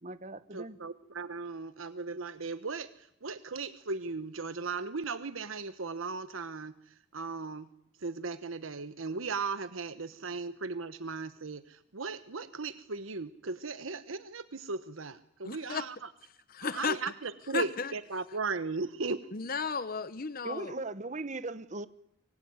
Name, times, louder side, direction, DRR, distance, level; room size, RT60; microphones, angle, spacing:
voice 1, 0.0-0.8 20.4-21.9, right 2 dB, 35° right, 1.1 m, -38 dB
voice 2, 0.5-6.7 7.1-7.7 8.0-16.1 16.6-19.3, right 4 dB, 85° right, 1.1 m, -37 dB
voice 3, 15.4-15.9 16.5-17.0 17.5-17.9 19.3-20.7, left 5 dB, 45° left, 1.0 m, -34 dB
24.5 x 22.5 x 9.6 m
head